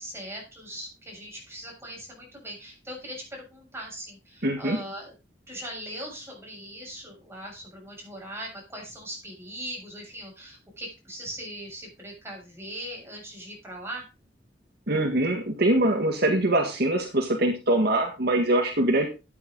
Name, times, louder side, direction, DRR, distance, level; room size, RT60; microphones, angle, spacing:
voice 1, 0.0-5.1 5.5-14.0, equal, 15° right, -2 dB, 7.2 m, -40 dB
voice 2, 4.4-4.8 14.9-19.1, right 1 dB, 60° right, 4 dB, 1.9 m, -23 dB
13.5 x 8.9 x 4.0 m, 0.29 s
head